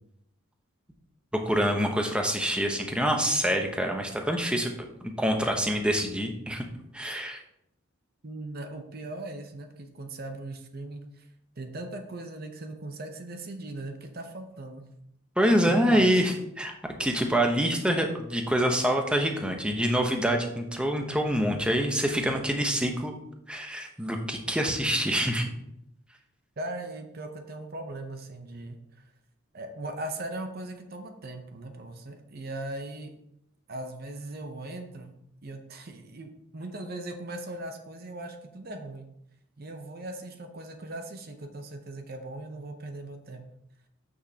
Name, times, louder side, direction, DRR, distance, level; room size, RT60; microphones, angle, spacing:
voice 1, 1.3-4.7 5.2-6.7 6.9-7.4 15.4-16.7 17.0-23.2 23.5-25.5, equal, 5° right, 3 dB, 0.8 m, -26 dB
voice 2, 8.2-11.3 11.6-14.8 15.7-16.2 26.6-28.8 29.5-33.1 33.7-39.0 39.6-43.4, right 2 dB, 50° right, 6 dB, 0.7 m, -39 dB
9.2 x 6.2 x 2.8 m, 0.80 s
head